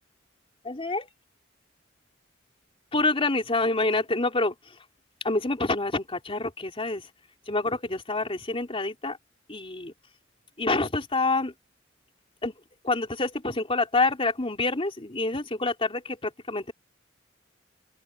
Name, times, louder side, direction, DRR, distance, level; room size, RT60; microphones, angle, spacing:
voice 1, 0.6-1.1 2.9-4.5 5.2-7.0 7.5-9.2 9.5-9.9 10.6-11.5 12.4-12.5 12.8-16.7, left 2 dB, 30° left, 3.6 m, -27 dB
open air
head